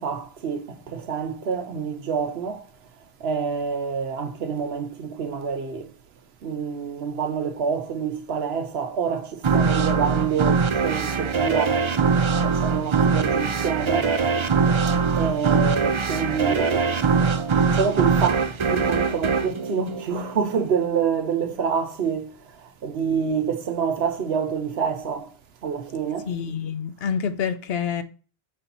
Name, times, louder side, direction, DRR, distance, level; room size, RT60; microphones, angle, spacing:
voice 1, 0.0-2.6 3.2-5.9 6.4-11.9 12.4-14.1 15.1-16.9 17.7-25.3 25.6-26.3, right 6 dB, 75° right, 1.1 m, -27 dB
sound 1, 9.4-20.6, right 5 dB, 40° right, 0.4 m, -22 dB
voice 2, 26.3-28.0, left 7 dB, 75° left, 1.0 m, -27 dB
6.7 x 4.3 x 4.0 m
omnidirectional pair, 1.1 m